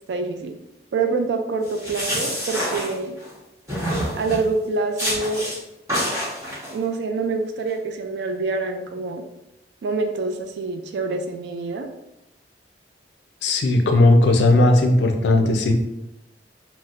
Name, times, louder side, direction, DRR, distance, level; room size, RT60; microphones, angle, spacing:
voice 1, 0.1-0.5 0.9-3.1 4.1-5.5 6.7-9.2 9.8-11.9, right 3 dB, 70° right, 6 dB, 0.3 m, -26 dB
sound 1, 1.6-3.3 3.7-4.5 5.0-5.6 5.9-6.7, equal, 15° right, 1.0 m, -27 dB
voice 2, 13.4-15.7, left 2 dB, 75° left, 4 dB, 0.4 m, -16 dB
4.0 x 2.0 x 2.4 m, 0.89 s
head